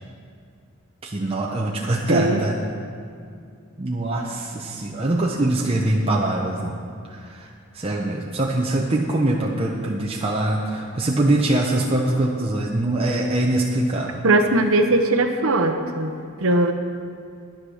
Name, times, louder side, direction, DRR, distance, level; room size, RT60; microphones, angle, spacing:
voice 1, 1.0-2.6 3.8-6.7 7.1-7.5 7.7-14.2, right 1 dB, 25° right, -2 dB, 0.8 m, -23 dB
voice 2, 2.1-2.4 14.2-16.7, right 2 dB, 65° right, 4 dB, 0.9 m, -20 dB
11.0 x 10.0 x 6.3 m, 2.4 s
head